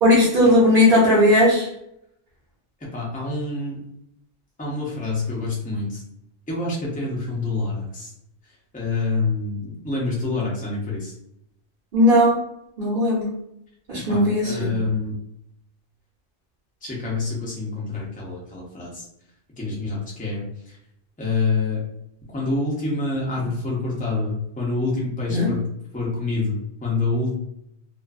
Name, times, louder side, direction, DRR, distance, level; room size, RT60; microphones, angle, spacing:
voice 1, 0.0-1.7 11.9-12.4 12.8-13.3 13.9-14.7 25.3-25.5, left 1 dB, 50° right, -8 dB, 0.9 m, -17 dB
voice 2, 2.9-3.8 4.6-6.0 6.5-8.1 8.7-11.1 14.1-15.1 16.8-19.0 19.6-20.8 21.2-21.8 22.3-25.7 25.9-27.4, left 3 dB, 10° left, -4 dB, 0.4 m, -27 dB
2.5 x 2.4 x 2.4 m, 0.78 s
omnidirectional pair, 1.3 m